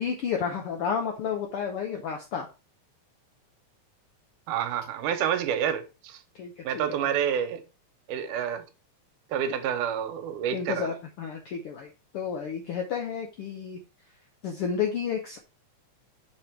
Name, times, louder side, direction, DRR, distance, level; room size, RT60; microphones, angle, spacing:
voice 1, 0.0-2.5 6.3-6.6 7.0-7.1 10.5-11.9 12.1-13.8 14.4-15.4, left 7 dB, 85° left, 1.2 m, -31 dB
voice 2, 4.5-6.2 6.6-7.6 8.1-8.6 9.3-11.0, right 9 dB, 80° right, 2.3 m, -28 dB
5.3 x 4.3 x 4.4 m
omnidirectional pair, 3.6 m